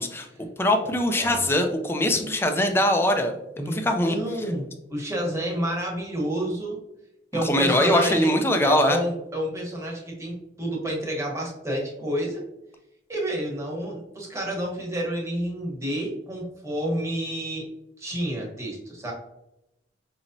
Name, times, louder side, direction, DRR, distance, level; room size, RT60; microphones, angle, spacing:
voice 1, 0.0-3.3 3.7-4.2 7.4-9.0, left 1 dB, 15° left, 5 dB, 0.4 m, -22 dB
voice 2, 0.8-1.4 3.6-6.8 7.3-8.3 8.6-12.4 13.1-17.7 18.0-19.1, right 1 dB, 15° right, -2 dB, 1.1 m, -30 dB
5.4 x 3.0 x 2.6 m, 0.89 s
head